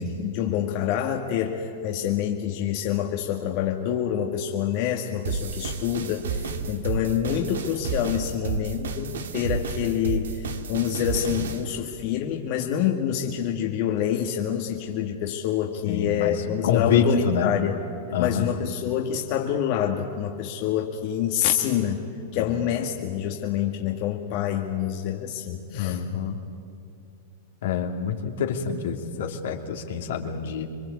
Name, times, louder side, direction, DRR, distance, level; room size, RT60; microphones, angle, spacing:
voice 1, 0.0-17.8 18.2-22.0 22.3-26.0, left 10 dB, 55° left, 1 dB, 2.0 m, -27 dB
sound 1, 5.2-11.6, right 5 dB, 85° right, 2.0 m, -31 dB
voice 2, 15.8-16.4 16.6-17.5 18.1-18.5 22.3-22.5 25.7-26.4 27.6-30.7, left 7 dB, 75° left, 3 dB, 2.9 m, -26 dB
26.0 x 23.0 x 8.4 m, 2.6 s
hypercardioid pair, 120°, 0 cm